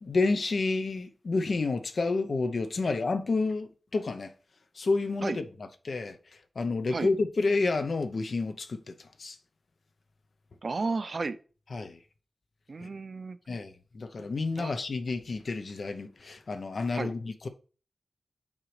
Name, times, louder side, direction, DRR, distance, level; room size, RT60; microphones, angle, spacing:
voice 1, 0.0-4.3 4.7-5.4 5.8-9.4 11.7-12.0 12.8-12.9 13.5-17.5, left 3 dB, 65° left, 0.7 m, -30 dB
voice 2, 10.6-11.4 12.7-13.4 14.6-14.7 16.9-17.1, right 3 dB, 55° right, 0.5 m, -33 dB
7.2 x 5.2 x 3.2 m
wide cardioid pair, 110°, 0 cm